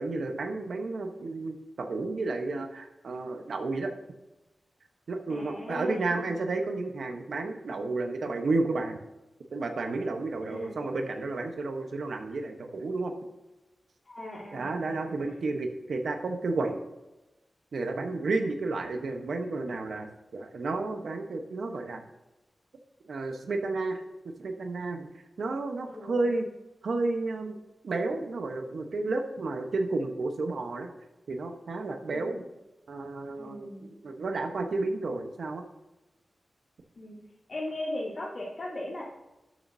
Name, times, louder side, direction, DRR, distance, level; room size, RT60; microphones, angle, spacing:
voice 1, 0.0-3.9 5.1-9.0 9.5-13.1 14.5-16.8 17.7-22.0 23.1-25.1 25.4-26.5 26.8-30.9 31.3-32.4 32.9-33.7 34.0-35.6, right 3 dB, 75° right, 5 dB, 1.0 m, -32 dB
voice 2, 5.3-6.5 10.5-10.7 14.0-15.1 25.9-26.3 32.1-32.4 33.4-33.9 36.9-37.2 37.5-39.0, left 1 dB, 50° left, -5 dB, 3.3 m, -38 dB
11.5 x 7.3 x 2.7 m, 1.0 s
wide cardioid pair, 145°, 0 cm